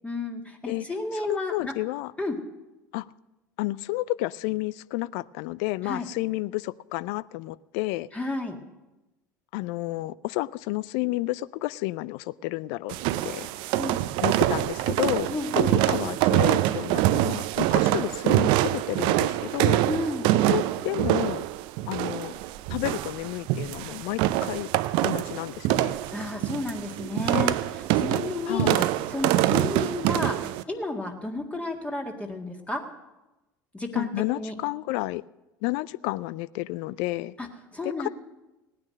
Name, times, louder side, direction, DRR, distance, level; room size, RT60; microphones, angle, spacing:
voice 1, 0.0-1.7 2.2-2.4 5.8-6.1 8.1-8.6 13.7-14.0 15.3-15.9 19.9-20.5 26.1-28.8 29.1-30.4 30.7-32.8 33.7-34.5 37.4-37.5 37.7-38.1, left 2 dB, 10° left, 2 dB, 1.8 m, -32 dB
voice 2, 1.2-2.1 2.9-3.1 3.6-8.1 9.5-12.9 13.2-13.5 14.2-15.3 15.5-19.8 20.4-21.4 21.9-22.4 22.7-24.7 25.0-26.0 28.5-28.9 34.0-35.2 35.6-37.3 37.8-38.1, left 19 dB, 60° left, 20 dB, 0.4 m, -31 dB
sound 1, 12.9-30.6, right 15 dB, 55° right, 0.6 m, -25 dB
17.5 x 9.6 x 6.4 m, 1.0 s
figure-of-eight pair, 70°, 10 cm